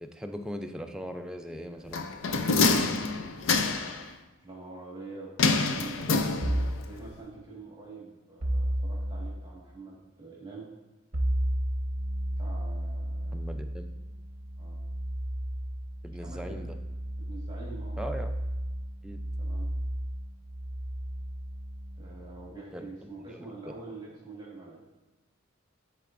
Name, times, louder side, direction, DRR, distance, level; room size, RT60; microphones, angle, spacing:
voice 1, 0.0-2.0 13.3-13.9 16.0-16.7 18.0-18.3 19.0-19.2 22.7-22.9 23.3-23.5, equal, 5° right, 5 dB, 0.4 m, -39 dB
voice 2, 1.5-2.2 4.4-10.7 12.4-13.6 14.6-14.8 16.2-16.7 17.2-18.0 19.4-19.7 22.0-24.8, right 3 dB, 20° right, -5 dB, 1.5 m, -46 dB
sound 1, 1.9-4.0 5.4-6.8 7.1-7.2, left 4 dB, 70° left, 0.5 m, -26 dB
sound 2, 6.4-6.8 8.4-9.3 11.1-22.5, right 1 dB, 45° right, 0.9 m, -33 dB
9.7 x 4.3 x 2.5 m, 1.1 s
head